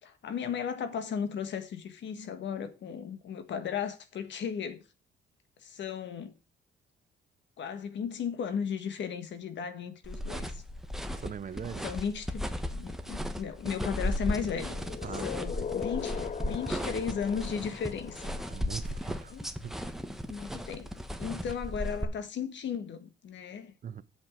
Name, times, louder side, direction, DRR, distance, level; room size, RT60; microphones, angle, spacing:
voice 1, 0.0-4.9 5.6-6.3 7.6-10.6 11.8-14.7 15.2-18.4 19.3-19.5 20.3-20.9 21.2-23.7, left 7 dB, 65° left, 1.7 m, -35 dB
sound 1, 10.0-22.0, left 1 dB, ahead, 1.2 m, -36 dB
voice 2, 11.2-11.9 15.0-15.3 18.5-19.3 19.6-19.8 23.8-24.0, right 8 dB, 45° right, 0.8 m, -40 dB
sound 2, 14.2-19.2, left 7 dB, 35° left, 0.5 m, -40 dB
7.9 x 7.6 x 5.2 m
cardioid pair, 90°, 20 cm